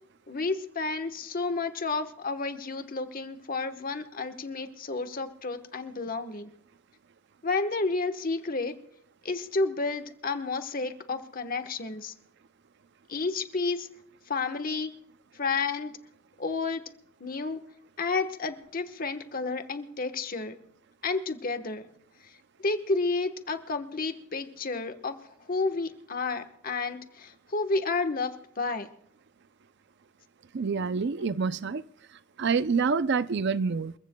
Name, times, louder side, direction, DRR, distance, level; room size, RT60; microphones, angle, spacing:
voice 1, 0.3-6.5 7.4-8.7 9.2-12.1 13.1-13.9 14.3-14.9 15.3-16.0 16.4-16.8 17.2-17.6 18.0-20.6 21.0-21.9 22.2-22.3 22.6-28.9, left 3 dB, 45° left, 1.2 m, -31 dB
voice 2, 30.5-31.8 32.4-33.9, right 5 dB, 60° right, 0.5 m, -27 dB
28.0 x 15.0 x 2.3 m
head